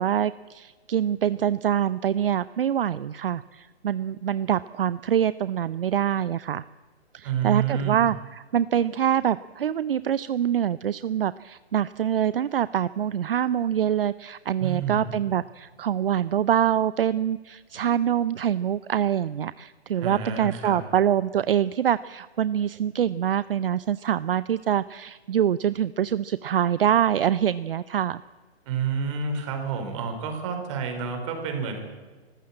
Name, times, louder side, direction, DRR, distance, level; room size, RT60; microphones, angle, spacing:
voice 1, 0.0-6.7 7.1-28.2, right 9 dB, 60° right, 16 dB, 0.7 m, -25 dB
voice 2, 7.2-8.0 14.6-15.1 19.9-20.8 28.7-31.8, right 6 dB, 30° right, 5 dB, 4.6 m, -29 dB
25.5 x 15.0 x 8.7 m, 1.4 s
hypercardioid pair, 160°, 32 cm